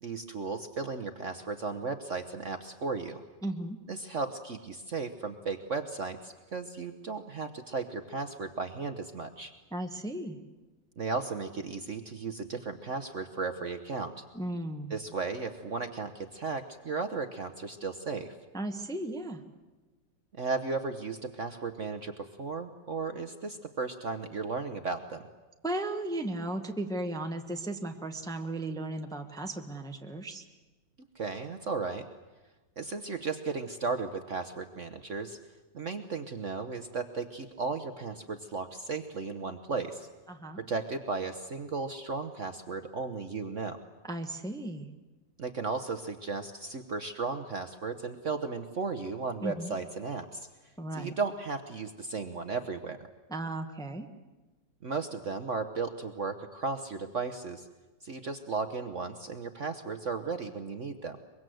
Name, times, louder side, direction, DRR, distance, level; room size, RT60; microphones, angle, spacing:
voice 1, 0.0-3.2 3.9-9.5 11.0-14.2 14.9-18.4 20.4-25.2 31.1-32.1 32.8-35.4 35.7-40.1 40.6-43.8 45.4-50.5 50.9-53.1 54.8-57.7 58.0-61.2, right 4 dB, 50° right, 8 dB, 1.2 m, -35 dB
voice 2, 3.4-3.8 9.7-10.4 14.3-14.9 18.5-19.4 25.6-30.4 40.3-40.6 44.0-44.9 49.4-49.7 50.8-51.1 53.3-54.1, right 1 dB, ahead, 4 dB, 1.1 m, -35 dB
24.0 x 23.0 x 7.8 m, 1.2 s
omnidirectional pair, 2.0 m